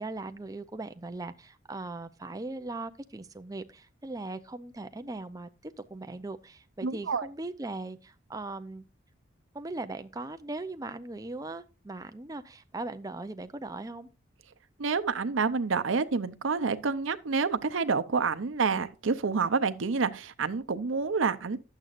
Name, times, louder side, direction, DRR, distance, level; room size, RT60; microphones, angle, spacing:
voice 1, 0.0-8.8 9.5-14.1, right 2 dB, 20° right, 0.5 m, -39 dB
voice 2, 6.8-7.3 14.8-21.6, right 5 dB, 85° right, 0.7 m, -28 dB
11.5 x 8.1 x 2.5 m
head